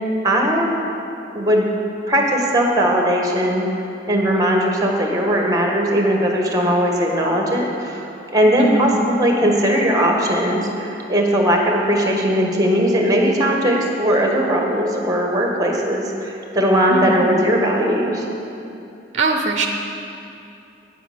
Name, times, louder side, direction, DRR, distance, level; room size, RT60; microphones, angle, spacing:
voice 1, 0.2-0.8 1.3-1.7 2.1-3.6 4.1-18.2, equal, 20° right, 0 dB, 1.4 m, -19 dB
voice 2, 8.6-8.9 16.9-17.3 19.1-19.7, right 3 dB, 40° right, 4 dB, 0.6 m, -21 dB
9.1 x 8.8 x 6.7 m, 2.8 s
head